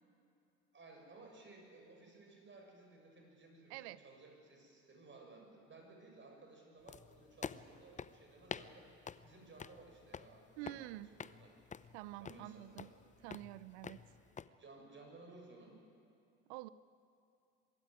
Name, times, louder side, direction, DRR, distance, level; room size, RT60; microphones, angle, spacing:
voice 1, 0.7-11.5 12.2-13.0 14.6-15.8, right 3 dB, 35° right, 2 dB, 6.7 m, -58 dB
voice 2, 3.7-4.0 10.6-11.1 11.9-12.9 13.2-14.0 16.5-16.7, right 17 dB, 75° right, 17 dB, 0.6 m, -47 dB
sound 1, 6.9-14.5, left 6 dB, 20° left, 0.7 m, -49 dB
24.5 x 13.0 x 9.7 m, 2.5 s
hypercardioid pair, 65°, 33 cm